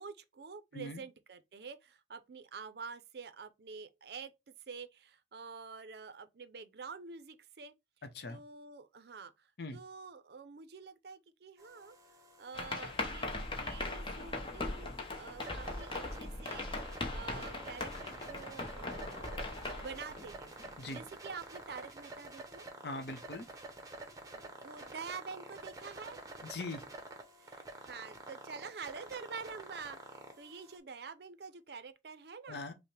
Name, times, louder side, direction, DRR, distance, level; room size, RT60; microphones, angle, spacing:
voice 1, 0.0-7.7 8.3-12.0 12.4-19.5 19.7-20.5 20.9-22.7 24.3-26.2 27.4-32.6, right 5 dB, 60° right, 0.5 m, -47 dB
sound 1, 11.6-30.8, right 2 dB, 20° right, 0.7 m, -50 dB
sound 2, 12.5-21.0, left 2 dB, 30° left, 0.7 m, -40 dB
voice 2, 22.8-23.5 26.4-26.8 32.5-32.7, left 2 dB, 65° left, 0.7 m, -41 dB
5.5 x 2.1 x 3.2 m
head